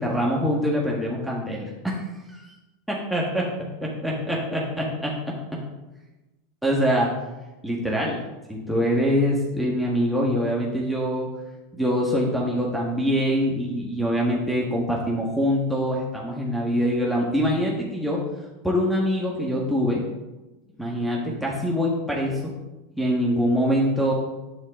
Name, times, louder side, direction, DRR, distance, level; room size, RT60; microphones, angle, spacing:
voice 1, 0.0-2.0 2.3-2.5 2.9-3.5 3.8-5.1 6.6-7.1 7.6-8.2 8.5-11.3 11.7-18.2 18.6-20.0 20.8-22.4 23.0-24.1, equal, ahead, -4 dB, 1.6 m, -24 dB
10.5 x 4.5 x 3.8 m, 1.1 s
hypercardioid pair, 95°, 0 cm